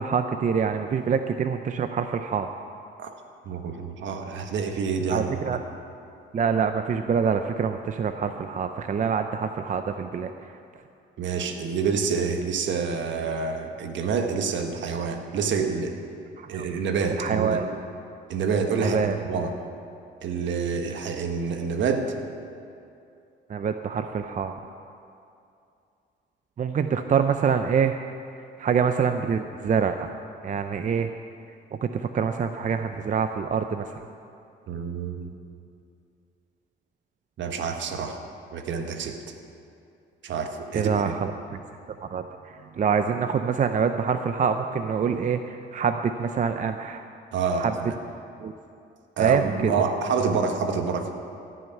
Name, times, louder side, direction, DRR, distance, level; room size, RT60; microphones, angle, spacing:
voice 1, 0.0-2.5 5.1-5.6 6.3-10.6 16.4-16.7 17.1-17.6 18.8-19.2 23.5-24.5 26.6-28.0 28.6-30.1 30.4-31.1 31.7-34.0 40.7-41.6 42.0-47.0 47.6-47.7 48.4-48.5 49.2-49.7, right 6 dB, 40° right, 7 dB, 0.6 m, -26 dB
voice 2, 3.4-5.4 11.2-15.9 16.5-17.6 18.3-19.5 20.2-22.1 34.7-35.3 37.4-38.2 38.5-39.2 40.2-41.1 47.3-47.9 49.2-51.1, right 5 dB, 70° right, 5 dB, 1.5 m, -27 dB
15.0 x 6.5 x 9.3 m, 2.6 s
cardioid pair, 90°, 20 cm